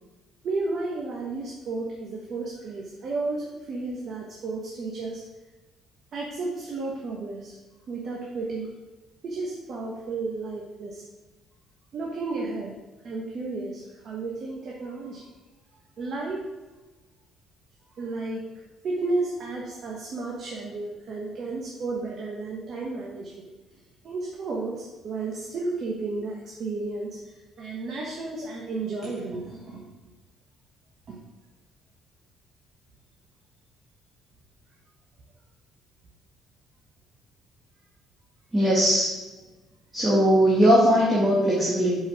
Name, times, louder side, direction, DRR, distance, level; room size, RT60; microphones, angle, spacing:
voice 1, 0.4-5.2 6.1-7.5 7.9-8.7 9.2-11.0 11.9-12.8 13.0-15.2 16.0-16.5 18.0-18.4 18.8-23.3 24.0-27.2 27.6-29.8 31.1-31.2, right 3 dB, 45° right, -2 dB, 1.3 m, -32 dB
voice 2, 38.5-39.2 39.9-42.0, equal, 10° right, -6 dB, 1.6 m, -20 dB
5.6 x 5.6 x 6.3 m, 1.2 s
cardioid pair, 155°, 0 cm